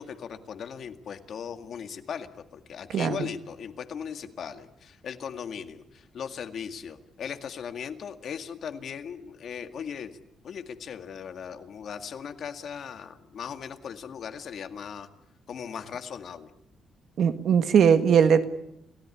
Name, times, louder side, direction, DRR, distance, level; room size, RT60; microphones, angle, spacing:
voice 1, 0.0-10.2 10.4-15.1 15.5-16.5, left 7 dB, 50° left, 8 dB, 2.0 m, -38 dB
voice 2, 2.9-3.3 17.2-18.4, right 7 dB, 55° right, 9 dB, 1.8 m, -20 dB
29.5 x 17.5 x 9.8 m, 0.81 s
cardioid pair, 170°, 0 cm